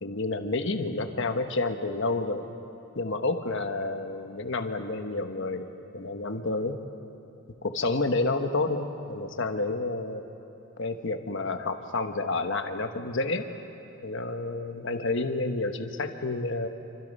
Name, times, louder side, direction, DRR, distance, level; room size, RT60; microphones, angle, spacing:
voice 1, 0.0-2.5 2.9-6.8 7.6-10.2 10.8-13.5 14.0-16.7, left 2 dB, 60° left, 7 dB, 1.3 m, -29 dB
28.0 x 25.0 x 5.5 m, 2.9 s
head